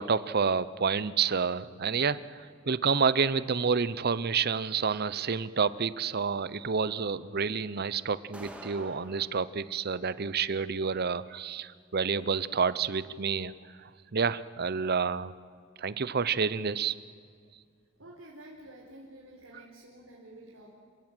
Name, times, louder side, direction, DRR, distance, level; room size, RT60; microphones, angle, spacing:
voice 1, 0.0-13.5 13.8-15.3 15.8-17.0, right 5 dB, 50° right, 17 dB, 0.8 m, -29 dB
sound 1, 8.3-9.3, right 1 dB, 5° right, 2.3 m, -46 dB
voice 2, 18.0-20.8, right 1 dB, 85° right, -4 dB, 4.4 m, -50 dB
28.0 x 16.0 x 9.1 m, 2.2 s
head